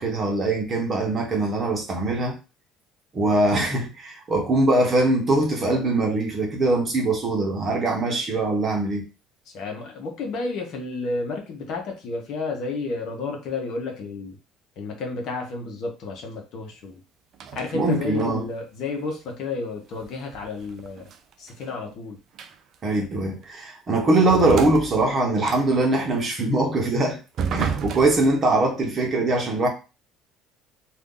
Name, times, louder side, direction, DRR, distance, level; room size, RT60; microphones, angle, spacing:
voice 1, 0.0-2.3 3.1-9.0 17.7-18.5 22.8-27.2 27.5-29.7, right 2 dB, 30° right, 0.9 m, -22 dB
voice 2, 9.5-14.4 14.8-17.0 17.5-21.0 21.4-22.2, left 3 dB, 55° left, 0.9 m, -31 dB
sound 1, 17.3-17.8 18.2-18.5 20.0-22.0 22.4-22.8 23.4-23.5 24.3-25.8 27.4-28.3, right 6 dB, 45° right, 0.4 m, -31 dB
2.5 x 2.4 x 3.7 m
cardioid pair, 145°, 0 cm